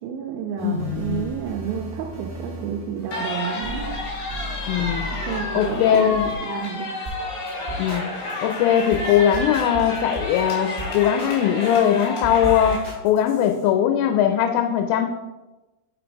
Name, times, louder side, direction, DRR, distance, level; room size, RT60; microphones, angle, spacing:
voice 1, 0.0-4.0 5.2-6.9, right 8 dB, 85° right, 0 dB, 2.9 m, -31 dB
voice 2, 0.6-1.3 4.7-5.1 5.5-6.3 7.8-8.0 8.4-15.1, left 9 dB, 90° left, 6 dB, 3.1 m, -20 dB
sound 1, 0.6-6.3, right 1 dB, 35° right, 1.4 m, -36 dB
sound 2, 3.1-12.8, left 2 dB, 60° left, 4.1 m, -30 dB
sound 3, 7.0-7.2 7.5-8.0 8.3-8.5 8.9-9.1 9.3-10.4 10.8-11.3 11.6-13.6, equal, 10° left, 2.2 m, -34 dB
9.1 x 5.2 x 4.6 m, 1.1 s
omnidirectional pair, 5.5 m